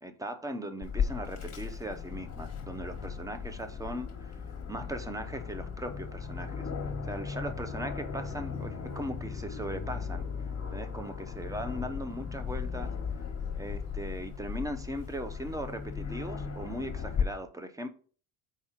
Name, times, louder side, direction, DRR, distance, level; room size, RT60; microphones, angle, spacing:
voice 1, 0.0-4.4 4.7-6.7 7.0-10.3 10.7-12.9 13.6-17.9, equal, 5° right, 0.8 m, -39 dB
Aircraft, 0.8-17.2, left 6 dB, 30° left, 1.5 m, -36 dB
4.7 x 4.3 x 5.7 m
cardioid pair, 90°, 50 cm